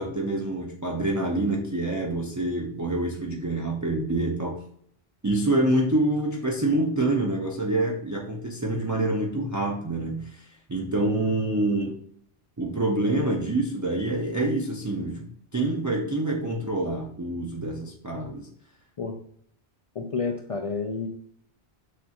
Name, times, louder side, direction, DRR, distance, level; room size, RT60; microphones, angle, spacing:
voice 1, 0.0-4.6 5.2-10.4 10.7-12.0 12.6-15.3 15.5-18.5, right 2 dB, 25° right, -2 dB, 0.4 m, -26 dB
voice 2, 20.0-21.1, left 4 dB, 55° left, 2 dB, 0.4 m, -29 dB
6.3 x 2.4 x 2.8 m, 0.67 s
omnidirectional pair, 1.1 m